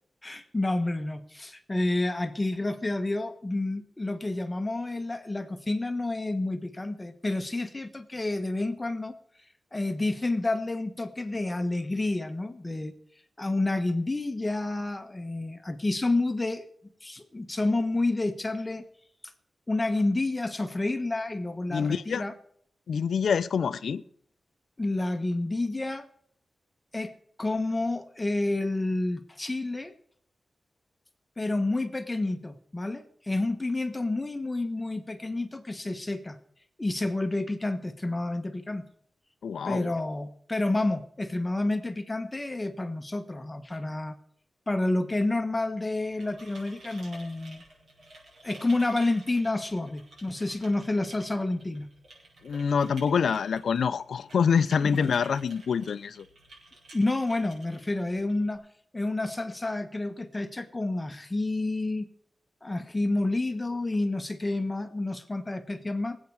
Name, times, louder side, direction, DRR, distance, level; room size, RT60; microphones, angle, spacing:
voice 1, 0.2-9.1 9.7-12.9 13.4-16.7 17.0-18.8 19.7-22.3 24.8-26.1 26.9-27.1 27.4-29.9 31.4-36.4 36.8-38.8 39.6-44.1 44.7-47.6 48.4-51.9 56.9-58.6 58.9-62.1 62.6-66.2, left 2 dB, 20° left, 9 dB, 1.2 m, -29 dB
voice 2, 21.7-22.2 22.9-24.0 39.4-39.9 52.4-56.2, left 6 dB, 85° left, 15 dB, 0.5 m, -26 dB
sound 1, 45.9-58.5, right 2 dB, 75° right, 6.1 m, -52 dB
24.0 x 8.4 x 4.7 m, 0.65 s
wide cardioid pair, 85°, 0 cm